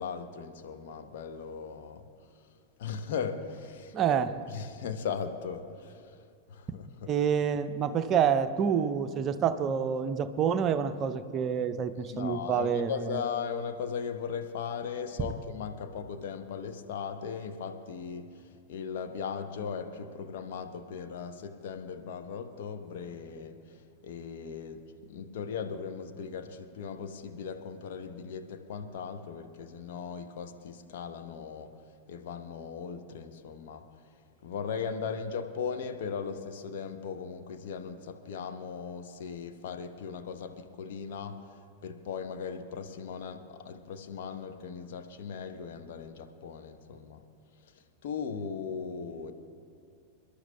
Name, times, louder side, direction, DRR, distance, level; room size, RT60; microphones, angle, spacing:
voice 1, 0.0-2.0 2.8-6.1 6.5-7.1 12.1-18.3 18.7-23.5 24.0-24.8 25.1-31.7 32.1-33.8 34.4-41.4 41.8-47.2 48.0-49.3, left 6 dB, 55° left, 7 dB, 0.8 m, -38 dB
voice 2, 3.9-4.3 7.1-13.2 15.2-15.3, right 7 dB, 30° right, 10 dB, 0.6 m, -28 dB
28.5 x 12.0 x 2.2 m, 2.2 s
figure-of-eight pair, 90°, 0 cm